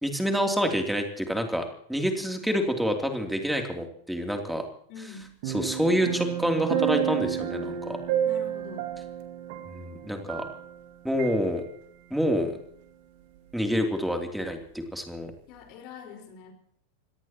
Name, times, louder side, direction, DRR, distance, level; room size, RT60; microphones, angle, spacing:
voice 1, 0.0-4.6 5.5-8.0 9.7-10.5 11.0-11.6 12.1-12.6 13.5-15.3, equal, ahead, 4 dB, 3.1 m, -27 dB
voice 2, 4.9-5.4 8.2-9.0 15.5-16.5, left 5 dB, 40° left, 4 dB, 4.9 m, -44 dB
sound 1, 5.4-10.9 11.2-11.4, right 10 dB, 50° right, 2.1 m, -30 dB
26.5 x 17.5 x 3.0 m, 0.63 s
figure-of-eight pair, 90°, 0 cm